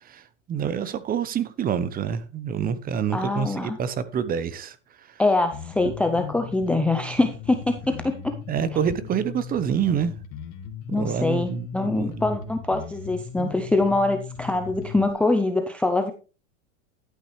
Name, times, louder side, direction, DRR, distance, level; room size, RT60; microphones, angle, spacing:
voice 1, 0.0-5.2 5.8-5.9 8.5-10.1 11.0-12.4, right 7 dB, 20° right, 0.8 m, -27 dB
voice 2, 3.1-3.8 5.2-8.4 10.9-16.1, left 2 dB, 5° left, 0.5 m, -24 dB
Bass guitar, 5.5-15.1, left 8 dB, 40° left, 1.7 m, -38 dB
11.5 x 9.0 x 3.2 m
hypercardioid pair, 125°, 40 cm